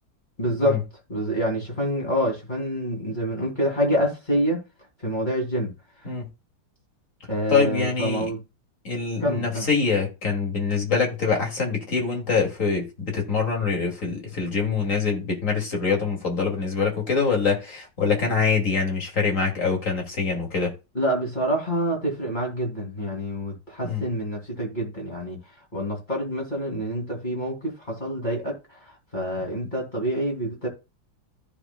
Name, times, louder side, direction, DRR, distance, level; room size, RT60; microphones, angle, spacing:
voice 1, 0.4-0.8 1.1-4.6 5.0-5.7 7.3-8.4 9.2-9.7 20.9-25.4 25.7-28.8 29.1-30.7, equal, 25° left, 2.9 m, -27 dB
voice 2, 7.5-8.3 8.8-20.7 23.8-24.1 29.4-29.5, left 5 dB, 45° left, 2.7 m, -24 dB
14.5 x 5.1 x 2.2 m
omnidirectional pair, 1.8 m